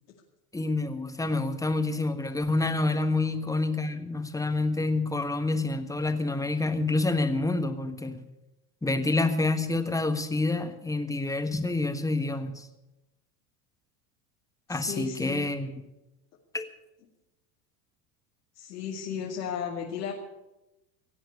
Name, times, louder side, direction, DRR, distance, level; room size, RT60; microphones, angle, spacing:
voice 1, 0.5-8.2 8.8-12.7 14.7-15.7 16.5-16.6, left 2 dB, 5° left, 8 dB, 1.4 m, -28 dB
voice 2, 14.7-15.5 18.6-20.1, left 7 dB, 80° left, -2 dB, 2.4 m, -34 dB
17.5 x 7.8 x 8.3 m, 0.98 s
supercardioid pair, 100°, 47 cm